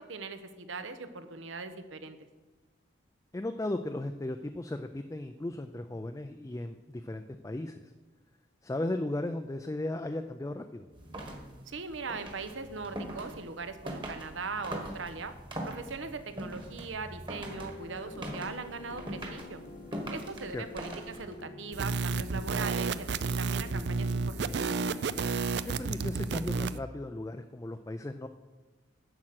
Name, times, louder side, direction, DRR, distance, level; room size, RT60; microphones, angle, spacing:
voice 1, 0.0-2.2 11.7-15.3 15.6-19.6 20.1-24.7, right 4 dB, 80° right, 10 dB, 0.9 m, -40 dB
voice 2, 3.3-7.9 8.6-10.9 20.5-20.6 25.6-28.3, left 1 dB, 15° left, 7 dB, 0.3 m, -36 dB
sound 1, 10.9-21.5, right 1 dB, 25° right, 1.4 m, -42 dB
sound 2, 17.4-25.2, left 3 dB, 50° left, 1.1 m, -48 dB
sound 3, 21.7-26.8, right 4 dB, 60° right, 0.4 m, -31 dB
10.5 x 7.6 x 5.9 m, 1.2 s
head